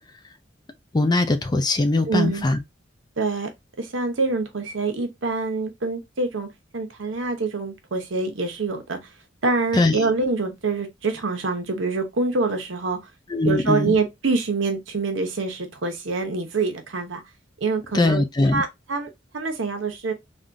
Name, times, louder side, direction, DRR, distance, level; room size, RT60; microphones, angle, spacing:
voice 1, 0.9-2.6 9.7-10.1 13.3-13.9 17.9-18.6, left 2 dB, 20° left, 0.3 m, -21 dB
voice 2, 2.1-2.5 3.2-3.5 3.8-6.5 6.7-9.0 9.4-13.0 13.4-17.2 17.6-18.2 18.5-20.1, right 3 dB, 90° right, 0.8 m, -25 dB
3.5 x 2.4 x 2.5 m
head